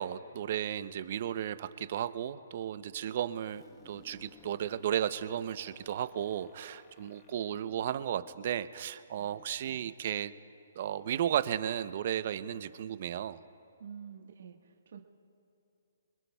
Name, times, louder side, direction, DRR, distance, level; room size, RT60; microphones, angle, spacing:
voice 1, 0.0-10.3 10.8-13.4, right 10 dB, 50° right, 14 dB, 0.6 m, -34 dB
sound 1, 3.4-9.1, left 3 dB, 15° left, 1.2 m, -60 dB
voice 2, 13.8-15.0, right 7 dB, 65° right, 2 dB, 1.4 m, -48 dB
26.5 x 21.0 x 2.3 m, 2.7 s
hypercardioid pair, 150°, 0 cm